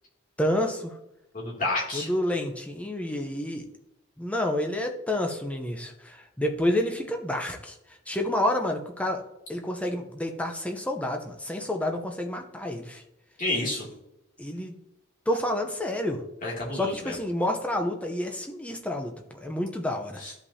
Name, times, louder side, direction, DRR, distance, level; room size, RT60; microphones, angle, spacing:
voice 1, 0.4-0.9 1.9-3.7 4.2-7.7 8.1-9.2 9.5-13.0 14.4-14.8 15.3-16.2 16.7-20.2, left 1 dB, 5° left, 3 dB, 0.7 m, -29 dB
voice 2, 1.3-2.1 13.4-13.9 16.4-17.2 20.2-20.3, left 2 dB, 40° left, -4 dB, 2.6 m, -30 dB
12.5 x 5.5 x 2.8 m, 0.86 s
head